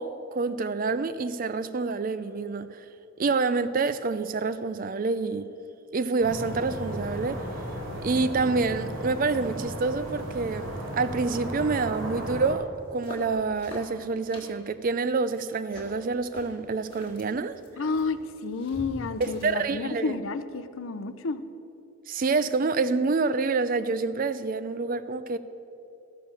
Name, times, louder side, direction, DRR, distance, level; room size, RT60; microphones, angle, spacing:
voice 1, 0.0-2.8 3.2-5.5 5.9-7.4 8.0-10.7 10.9-17.6 19.2-20.2 22.1-25.4, right 4 dB, 40° right, 13 dB, 0.4 m, -27 dB
sound 1, 6.2-12.5, equal, 70° right, 2.3 m, -35 dB
sound 2, 12.7-19.7, equal, 20° left, 1.8 m, -46 dB
voice 2, 17.8-21.4, left 4 dB, 65° left, 12 dB, 0.5 m, -31 dB
14.0 x 6.8 x 7.0 m, 2.8 s
head